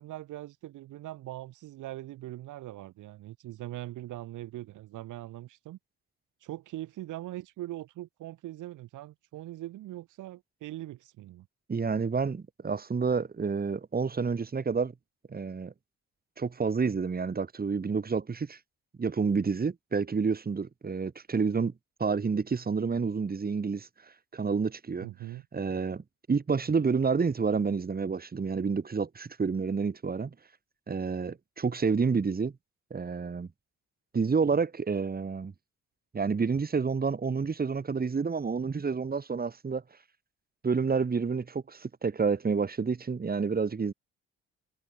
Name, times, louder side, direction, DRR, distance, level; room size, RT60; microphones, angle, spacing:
voice 1, 0.0-5.8 6.4-11.5 25.0-25.4, right 15 dB, 85° right, 1.7 m, -41 dB
voice 2, 11.7-14.9 15.3-15.7 16.4-18.6 19.0-21.7 22.0-23.9 24.3-25.1 25.5-26.0 26.3-30.3 30.9-32.5 32.9-33.5 34.1-35.5 36.1-39.8 40.6-43.9, right 5 dB, 30° right, 2.5 m, -29 dB
cardioid pair, 90°, 30 cm